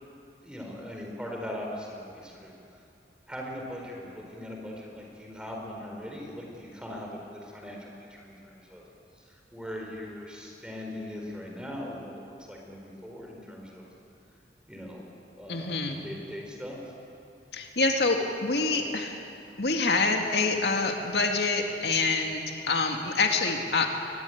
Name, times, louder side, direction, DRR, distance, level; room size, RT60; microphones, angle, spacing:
voice 1, 0.4-2.5 3.3-8.8 9.1-13.9 14.7-15.1 15.4-16.8, left 1 dB, 5° right, 0 dB, 4.4 m, -40 dB
voice 2, 15.5-16.0 17.5-19.2 19.6-23.9, left 3 dB, 75° left, 3 dB, 2.2 m, -26 dB
22.5 x 20.5 x 9.3 m, 2.7 s
head